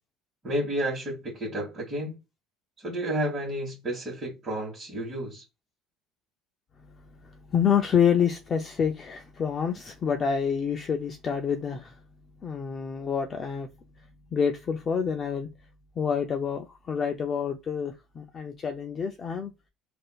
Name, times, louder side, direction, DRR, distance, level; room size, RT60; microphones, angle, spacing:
voice 1, 0.4-2.2 2.8-5.4, right 1 dB, 20° right, 1.4 m, -31 dB
voice 2, 7.2-12.0 12.4-13.7 14.3-15.5 16.0-19.5, left 7 dB, 25° left, 0.4 m, -27 dB
3.6 x 2.5 x 2.3 m
cardioid pair, 155°, 0 cm